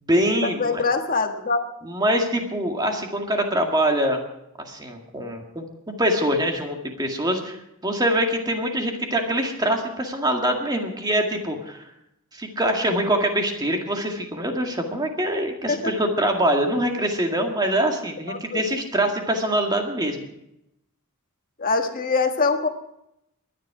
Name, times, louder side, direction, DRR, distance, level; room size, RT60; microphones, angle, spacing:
voice 1, 0.0-0.8 1.8-4.2 4.6-7.6 7.8-11.8 12.3-20.2, right 1 dB, 20° right, 3 dB, 1.9 m, -24 dB
voice 2, 0.6-1.6 15.7-15.8 18.3-18.6 21.6-22.7, left 4 dB, 40° left, 5 dB, 1.5 m, -23 dB
22.0 x 10.0 x 4.9 m, 0.82 s
head